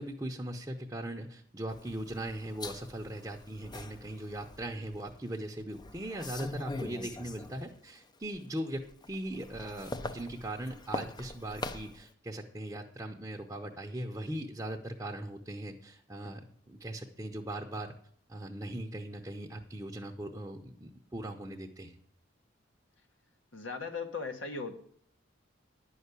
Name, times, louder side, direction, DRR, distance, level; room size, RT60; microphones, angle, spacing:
voice 1, 0.0-17.9 18.3-22.0, right 1 dB, 15° right, 1 dB, 0.7 m, -39 dB
sound 1, 1.7-5.1 5.6-7.9 8.2-12.1, left 2 dB, 20° left, 0.5 m, -43 dB
voice 2, 23.5-24.8, left 4 dB, 70° left, 5 dB, 1.4 m, -38 dB
10.0 x 5.6 x 8.2 m, 0.62 s
head